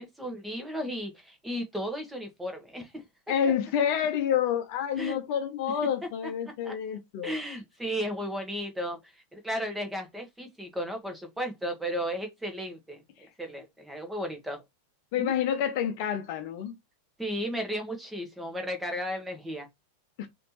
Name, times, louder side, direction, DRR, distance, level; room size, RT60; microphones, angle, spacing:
voice 1, 0.0-3.0 5.0-5.2 6.2-6.8 7.2-14.6 15.2-15.3 17.2-19.7, equal, 5° right, 1.3 m, -35 dB
voice 2, 3.3-7.4 15.1-16.7 20.2-20.3, left 8 dB, 45° left, 0.8 m, -28 dB
5.0 x 2.8 x 2.9 m
figure-of-eight pair, 90°, 0 cm